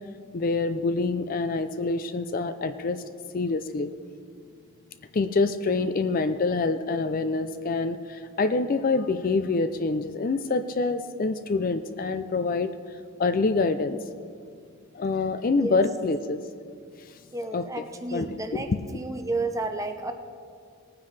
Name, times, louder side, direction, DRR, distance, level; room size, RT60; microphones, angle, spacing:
voice 1, 0.3-3.0 3.3-3.9 5.1-12.7 13.2-14.0 14.9-16.4 17.5-17.8 18.1-18.8, left 3 dB, 40° left, 10 dB, 0.4 m, -26 dB
voice 2, 17.3-20.1, right 2 dB, 15° right, 6 dB, 0.6 m, -32 dB
19.0 x 9.4 x 3.3 m, 2.2 s
head